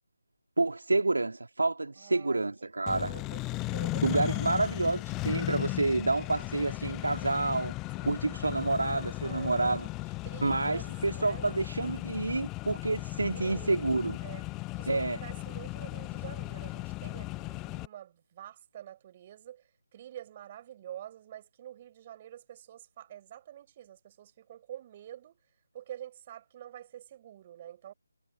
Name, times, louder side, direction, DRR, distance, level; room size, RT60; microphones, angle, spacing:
voice 1, 0.6-3.1 4.0-7.7 8.0-9.9 10.4-14.2 14.9-15.2, right 2 dB, 75° right, 2.8 m, -29 dB
voice 2, 2.0-5.0 8.0-8.7 9.2-9.8 10.2-11.5 13.3-25.4 25.7-27.9, right 11 dB, 25° right, 6.4 m, -47 dB
Accelerating revving vroom, 2.9-17.9, left 21 dB, 15° left, 0.3 m, -36 dB
figure-of-eight pair, 160°, 0 cm